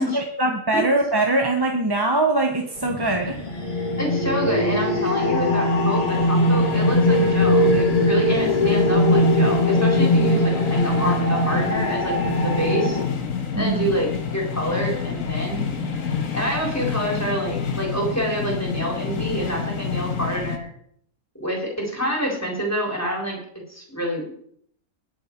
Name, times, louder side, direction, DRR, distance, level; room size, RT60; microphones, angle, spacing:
voice 1, 0.0-3.4 13.5-13.9, right 2 dB, 20° right, 2 dB, 1.0 m, -22 dB
sound 1, 2.8-20.6, left 6 dB, 65° left, 1.8 m, -29 dB
sound 2, 2.8-13.0, left 1 dB, 25° left, 2.3 m, -20 dB
voice 2, 4.0-13.0 13.6-15.6 16.3-20.7 21.4-23.4 23.7-24.3, equal, 10° left, -1 dB, 3.9 m, -27 dB
20.0 x 7.6 x 4.5 m, 0.66 s
omnidirectional pair, 1.5 m